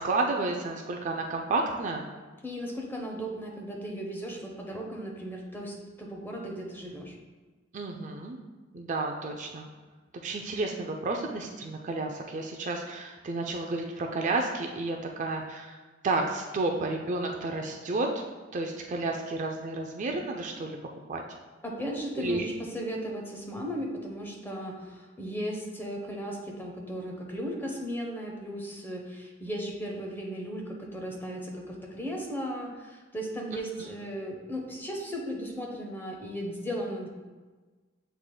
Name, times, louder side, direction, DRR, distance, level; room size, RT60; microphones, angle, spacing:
voice 1, 0.0-2.1 7.7-8.4 8.7-9.7 10.2-15.8 16.0-18.1 18.5-20.8 21.1-21.2 22.2-22.5, right 3 dB, 40° right, 2 dB, 0.4 m, -31 dB
voice 2, 2.4-7.1 21.6-37.1, equal, 10° left, 0 dB, 0.6 m, -36 dB
7.2 x 3.3 x 2.2 m, 1.3 s
head